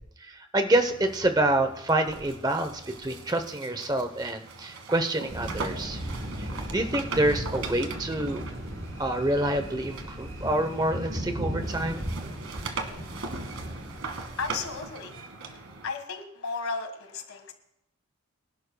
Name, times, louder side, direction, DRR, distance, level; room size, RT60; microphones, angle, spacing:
voice 1, 0.3-6.0 6.4-8.4 9.0-12.1, right 1 dB, 20° right, 7 dB, 0.8 m, -27 dB
sound 1, 0.7-11.3 11.6-15.9, right 4 dB, 80° right, 1.6 m, -41 dB
sound 2, 5.3-14.8, equal, 60° right, 5.7 m, -36 dB
voice 2, 14.4-15.1 15.5-17.5, left 4 dB, 80° left, 6 dB, 1.6 m, -34 dB
24.0 x 11.5 x 2.3 m, 0.82 s
head